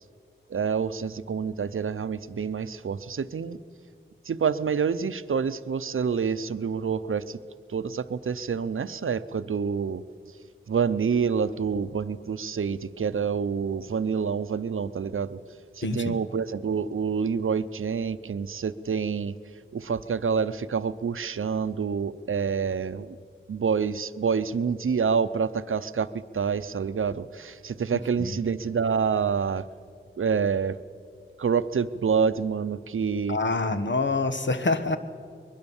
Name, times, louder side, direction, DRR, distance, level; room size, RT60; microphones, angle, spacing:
voice 1, 0.5-3.6 4.2-7.4 7.7-10.0 10.7-15.4 15.7-19.3 19.7-23.2 23.5-29.7 30.2-30.8 31.4-33.4, right 6 dB, 90° right, 15 dB, 0.6 m, -27 dB
voice 2, 15.8-16.2 28.2-28.4 33.3-35.0, left 3 dB, 65° left, 10 dB, 1.3 m, -26 dB
22.0 x 21.5 x 7.2 m, 2.3 s
wide cardioid pair, 70°, 20 cm